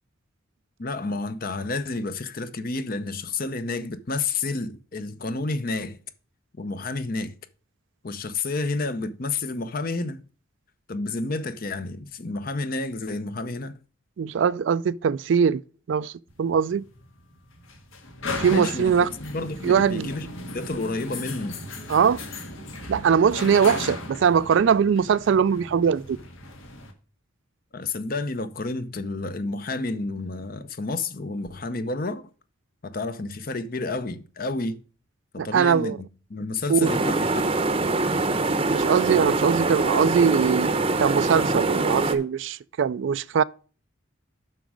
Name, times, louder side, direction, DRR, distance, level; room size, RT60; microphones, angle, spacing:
voice 1, 0.8-6.0 6.6-7.3 8.0-10.2 10.9-13.8 18.5-18.9 19.2-20.3 20.5-21.6 27.7-32.2 32.8-34.8 35.3-37.6, left 3 dB, 45° left, 0.7 m, -30 dB
voice 2, 14.2-15.6 15.9-16.1 16.4-16.8 18.4-19.1 19.6-20.1 21.9-22.2 22.9-26.2 35.4-36.0 36.7-36.9 38.7-40.7 41.0-43.4, right 7 dB, 65° right, 0.3 m, -21 dB
sound 1, 16.3-26.9, left 2 dB, 75° left, 1.8 m, -36 dB
sound 2, 36.8-42.2, right 2 dB, 25° right, 0.7 m, -24 dB
7.7 x 6.1 x 4.6 m
head